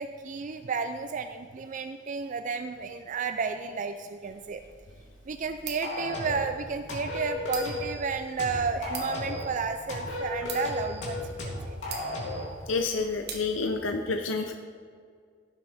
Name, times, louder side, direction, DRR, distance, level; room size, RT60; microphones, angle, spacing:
voice 1, 0.0-4.6 5.3-12.0, right 5 dB, 40° right, 8 dB, 0.4 m, -32 dB
sound 1, 4.2-13.7, right 5 dB, 55° right, 1.4 m, -45 dB
sound 2, 5.8-6.5 6.9-7.9 8.4-9.5 9.9-12.5, left 2 dB, 75° left, 2.9 m, -34 dB
voice 2, 12.7-14.5, left 4 dB, 90° left, 4 dB, 0.7 m, -29 dB
16.0 x 7.3 x 3.5 m, 2.1 s
head